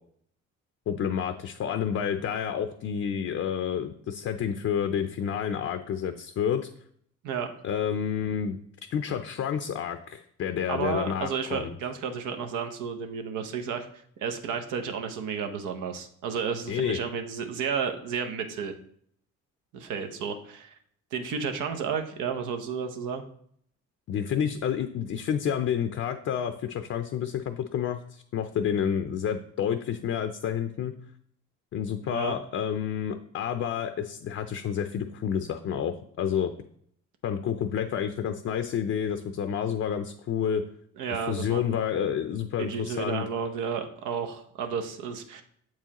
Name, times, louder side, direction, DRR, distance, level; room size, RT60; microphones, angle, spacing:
voice 1, 0.9-6.7 7.6-8.6 8.9-11.8 16.7-17.0 24.1-31.0 31.7-36.5 37.2-40.6 41.3-43.2, left 8 dB, 50° left, 8 dB, 0.5 m, -29 dB
voice 2, 10.7-13.9 14.2-18.7 19.7-20.7 21.1-23.2 32.0-32.4 41.0-41.7 42.6-45.4, right 6 dB, 90° right, 6 dB, 0.7 m, -32 dB
7.1 x 4.7 x 2.9 m, 0.66 s
cardioid pair, 90°, 30 cm